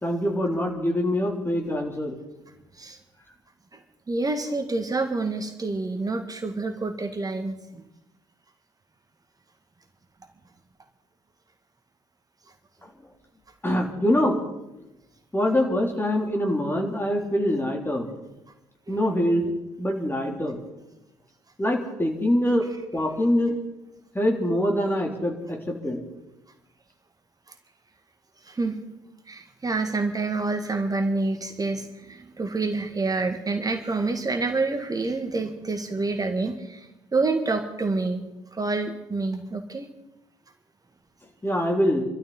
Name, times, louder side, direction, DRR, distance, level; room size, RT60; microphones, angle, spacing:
voice 1, 0.0-2.1 13.6-14.4 15.3-18.1 18.9-20.6 21.6-22.7 22.9-23.6 24.1-26.0 41.4-42.0, left 1 dB, 15° left, 1 dB, 3.3 m, -24 dB
voice 2, 4.1-7.9 18.9-19.0 28.5-28.8 29.3-38.2 38.5-39.9, right 3 dB, 20° right, 6 dB, 1.8 m, -28 dB
26.5 x 13.0 x 4.1 m, 0.96 s
figure-of-eight pair, 50°, 16 cm